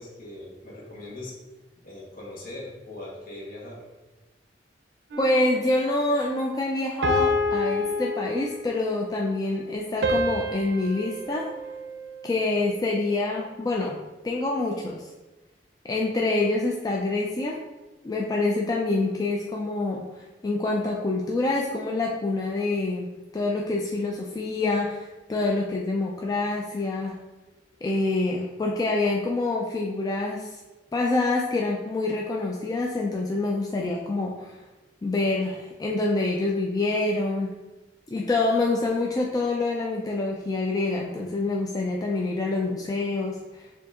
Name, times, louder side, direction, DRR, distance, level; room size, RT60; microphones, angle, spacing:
voice 1, 0.0-1.4 1.8-3.8, left 1 dB, 55° left, -4 dB, 1.2 m, -40 dB
sound 1, 5.1-5.8 7.0-8.8 10.0-12.4, left 2 dB, 80° right, 0.5 m, -28 dB
voice 2, 5.2-11.5 12.2-14.0 14.2-15.0 15.8-17.6 18.0-27.2 27.8-30.6 30.9-34.6 35.0-37.5 38.1-43.7, left 2 dB, 20° left, -2 dB, 0.3 m, -26 dB
6.7 x 2.7 x 2.4 m, 1.1 s
head